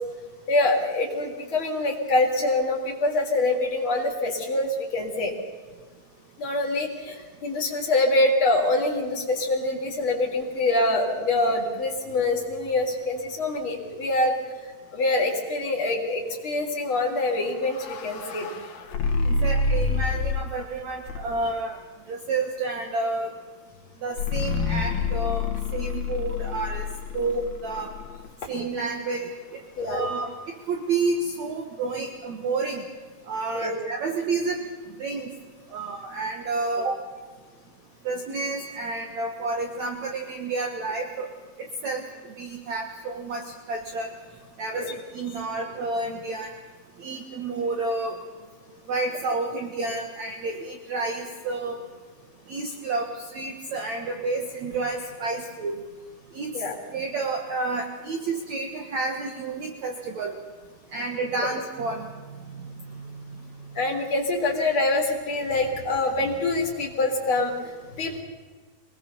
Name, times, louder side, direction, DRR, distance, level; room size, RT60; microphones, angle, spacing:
voice 1, 0.5-5.3 6.4-14.4 14.6-18.5 29.8-30.1 33.5-33.8 44.7-44.9 56.5-56.8 61.4-61.5 63.7-68.2, left 2 dB, 35° left, 0 dB, 4.2 m, -25 dB
sound 1, 17.3-20.6 21.1-21.6 24.2-28.3, left 4 dB, 75° left, 3.7 m, -28 dB
voice 2, 19.3-21.8 22.1-23.3 24.0-26.9 27.1-27.9 28.5-30.3 30.7-32.8 33.3-34.6 35.0-35.3 35.7-37.0 38.0-41.3 41.6-42.0 42.4-44.1 44.6-46.5 47.0-48.2 48.9-51.8 52.5-55.8 56.3-56.5 56.9-60.4 60.9-62.1 62.5-63.2, right 3 dB, 55° right, 4 dB, 2.4 m, -30 dB
24.5 x 20.0 x 7.0 m, 1.5 s
omnidirectional pair, 4.5 m